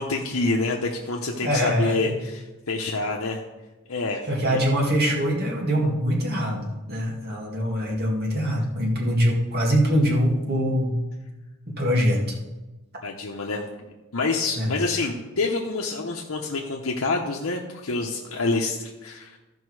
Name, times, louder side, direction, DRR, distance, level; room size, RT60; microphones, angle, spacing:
voice 1, 0.0-3.4 3.9-4.6 13.0-13.6 14.1-19.4, left 3 dB, 70° left, 0 dB, 0.9 m, -27 dB
voice 2, 1.4-2.0 4.3-11.0 11.7-12.4 14.6-14.7, equal, 50° right, -2 dB, 2.2 m, -23 dB
14.0 x 5.3 x 4.8 m, 1.1 s
head